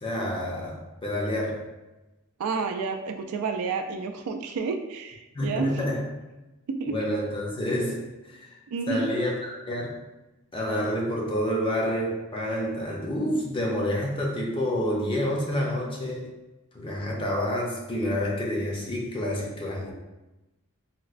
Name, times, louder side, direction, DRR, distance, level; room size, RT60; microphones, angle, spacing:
voice 1, 0.0-1.6 5.3-6.0 6.9-8.6 8.9-10.0 10.5-16.3 16.7-19.9, left 1 dB, 25° left, -1 dB, 0.5 m, -28 dB
voice 2, 2.4-5.8 6.7-7.0 8.7-9.1, right 4 dB, 75° right, 6 dB, 0.3 m, -30 dB
4.1 x 2.0 x 2.4 m, 1.0 s
head